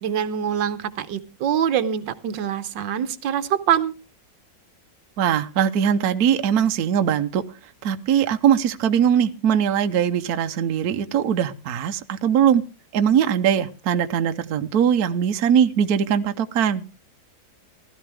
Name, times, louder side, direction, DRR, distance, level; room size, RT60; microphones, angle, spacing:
voice 1, 0.0-3.9, right 9 dB, 80° right, 1.5 m, -24 dB
voice 2, 5.2-12.6 12.9-16.8, right 8 dB, 65° right, 1.2 m, -21 dB
16.0 x 13.0 x 3.4 m
omnidirectional pair, 2.0 m